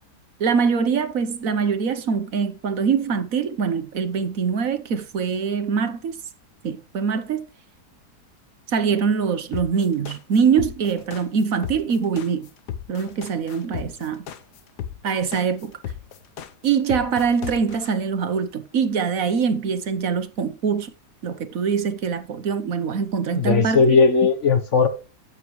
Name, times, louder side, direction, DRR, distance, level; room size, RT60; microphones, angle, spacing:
voice 1, 0.4-6.2 6.6-7.4 8.7-12.5 12.9-14.2 15.0-15.7 16.6-20.9 21.2-24.0, right 6 dB, 60° right, 1.3 m, -23 dB
sound 1, 9.5-17.9, left 9 dB, 80° left, 1.5 m, -35 dB
voice 2, 23.3-24.9, left 4 dB, 55° left, 1.1 m, -17 dB
12.0 x 8.3 x 3.1 m
omnidirectional pair, 1.7 m